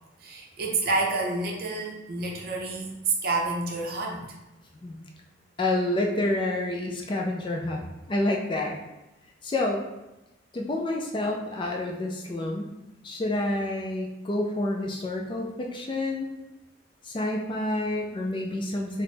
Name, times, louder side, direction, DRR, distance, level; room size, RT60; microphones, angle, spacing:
voice 1, 0.2-4.2, right 3 dB, 50° right, 0 dB, 0.6 m, -28 dB
voice 2, 5.6-8.7 9.4-9.8 10.5-12.7 13.0-16.3 17.0-19.0, left 1 dB, 25° left, 1 dB, 0.3 m, -28 dB
4.2 x 2.0 x 3.3 m, 0.98 s
head